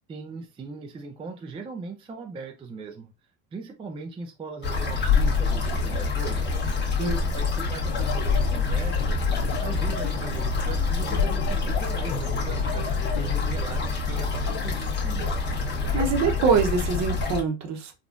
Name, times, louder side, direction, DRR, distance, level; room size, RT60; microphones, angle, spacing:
voice 1, 0.1-3.1 3.5-6.5 7.3-9.3 9.6-12.8 13.2-15.3, right 4 dB, 15° right, 0.4 m, -39 dB
sound 1, 4.6-17.4, left 4 dB, 30° left, 1.3 m, -26 dB
sound 2, 7.9-13.9, left 6 dB, 60° left, 0.8 m, -35 dB
voice 2, 15.9-18.0, right 5 dB, 45° right, 0.9 m, -24 dB
3.5 x 2.3 x 2.4 m
supercardioid pair, 100°, 38 cm